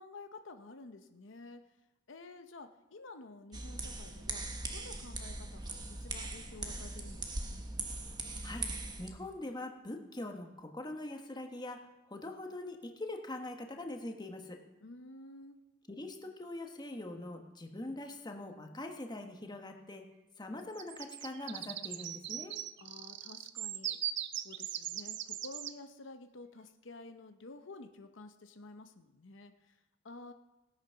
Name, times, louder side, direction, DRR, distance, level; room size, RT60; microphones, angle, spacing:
voice 1, 0.0-1.6 2.1-7.7 14.8-15.6 22.8-24.0 24.4-30.3, left 3 dB, 80° left, 7 dB, 0.9 m, -51 dB
sound 1, 3.5-9.1, right 2 dB, 20° right, 1.2 m, -40 dB
voice 2, 9.0-11.8 12.1-14.6 15.9-20.0 20.4-22.6, left 1 dB, 20° left, 4 dB, 1.3 m, -43 dB
sound 2, 20.8-25.7, right 11 dB, 65° right, 0.6 m, -40 dB
16.5 x 9.3 x 5.7 m, 1.0 s
head